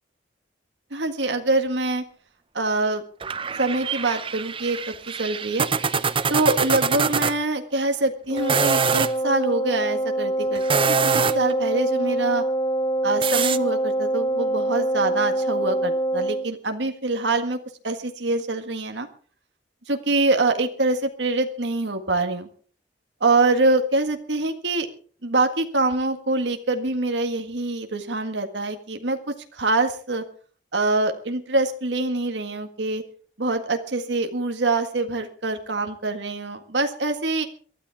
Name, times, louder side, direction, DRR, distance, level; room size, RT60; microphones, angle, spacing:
voice 1, 0.9-2.0 2.5-3.0 3.6-5.7 6.3-10.6 10.9-12.4 13.0-17.6 17.8-19.1 19.9-22.5 23.2-24.9 25.2-30.2 30.7-33.0 33.4-37.5, right 2 dB, 70° right, 5 dB, 1.8 m, -24 dB
sound 1, 3.2-7.3 8.4-9.1 10.5-11.5 13.2-13.6, right 6 dB, 30° right, 0.6 m, -24 dB
Wind instrument woodwind instrument, 8.3-16.5, right 1 dB, 25° left, 1.2 m, -25 dB
23.0 x 13.0 x 3.6 m, 0.44 s
head